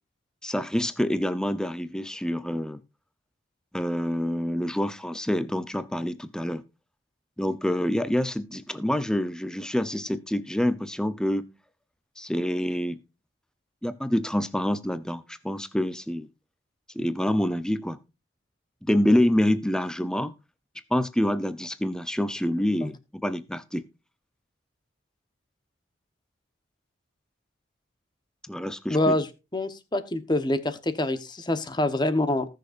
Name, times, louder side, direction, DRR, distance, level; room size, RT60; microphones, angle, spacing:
voice 1, 0.4-2.8 3.7-6.6 7.4-11.4 12.2-13.0 13.8-16.3 17.0-18.0 18.8-20.3 20.9-23.8 28.5-29.2, left 1 dB, 5° left, 0.6 m, -27 dB
voice 2, 28.9-29.3 29.5-32.5, left 1 dB, 20° left, 1.0 m, -25 dB
19.5 x 6.6 x 2.5 m
head